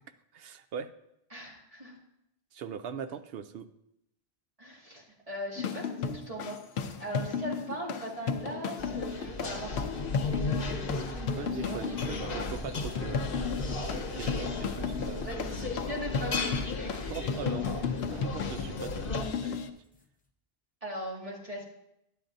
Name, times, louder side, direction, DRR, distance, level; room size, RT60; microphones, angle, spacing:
voice 1, 0.3-0.9 2.5-3.7 11.3-13.3 13.8-15.3 15.6-15.8 16.9-17.7 18.1-19.2 19.4-19.6, right 7 dB, 70° right, 9 dB, 0.8 m, -41 dB
voice 2, 1.3-2.0 4.6-12.5 14.1-14.7 15.2-17.1 20.8-21.6, equal, 35° right, -5 dB, 2.1 m, -40 dB
sound 1, 5.6-19.7, left 6 dB, 75° left, 0.9 m, -34 dB
sound 2, 8.8-19.2, left 3 dB, 55° left, 1.1 m, -35 dB
sound 3, 12.2-13.9 14.6-20.0, left 2 dB, 10° left, 0.5 m, -52 dB
11.5 x 8.8 x 2.6 m, 0.81 s
omnidirectional pair, 1.1 m